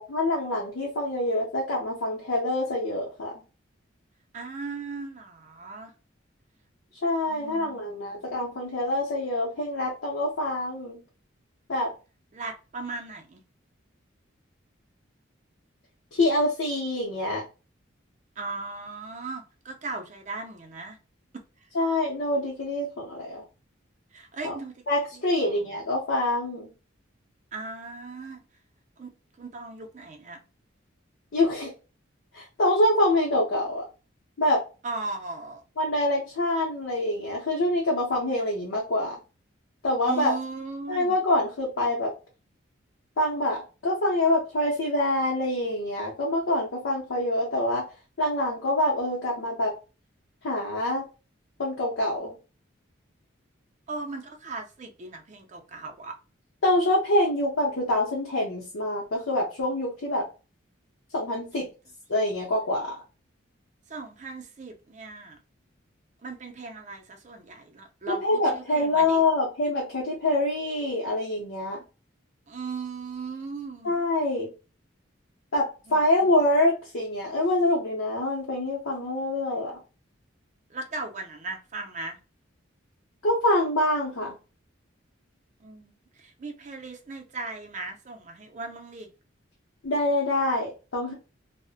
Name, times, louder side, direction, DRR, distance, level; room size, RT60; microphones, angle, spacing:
voice 1, 0.1-3.3 7.0-11.0 11.7-11.9 16.1-17.4 21.7-23.4 24.4-24.5 24.9-26.7 31.3-31.7 32.3-33.8 34.4-34.6 35.8-39.2 39.8-40.3 40.9-42.1 43.2-47.8 48.2-49.7 50.4-51.0 51.6-52.4 56.6-60.2 61.1-61.7 62.1-63.0 68.1-71.8 73.8-74.5 75.5-79.7 83.2-84.3 89.8-91.1, left 1 dB, 80° left, 0.7 m, -25 dB
voice 2, 4.3-5.9 7.3-8.4 12.3-13.4 18.4-21.0 24.1-24.7 25.1-25.5 27.5-28.4 29.0-29.1 29.4-30.4 34.8-35.6 40.0-41.1 53.9-56.2 61.6-61.7 63.9-65.4 66.2-69.2 72.5-73.9 75.9-76.0 80.7-82.2 85.6-85.9 86.2-89.1, right 3 dB, 35° right, 0.4 m, -37 dB
2.5 x 2.1 x 2.4 m
head